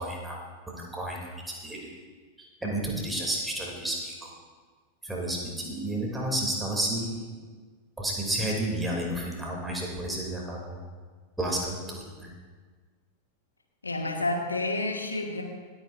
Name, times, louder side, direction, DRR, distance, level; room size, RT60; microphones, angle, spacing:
voice 1, 0.0-1.9 2.4-4.3 5.0-7.3 8.0-10.8 11.4-12.3, right 1 dB, 5° right, -2 dB, 2.9 m, -31 dB
voice 2, 13.8-15.4, left 2 dB, 80° left, 2 dB, 1.6 m, -29 dB
26.5 x 8.9 x 2.6 m, 1.5 s
figure-of-eight pair, 90°, 0 cm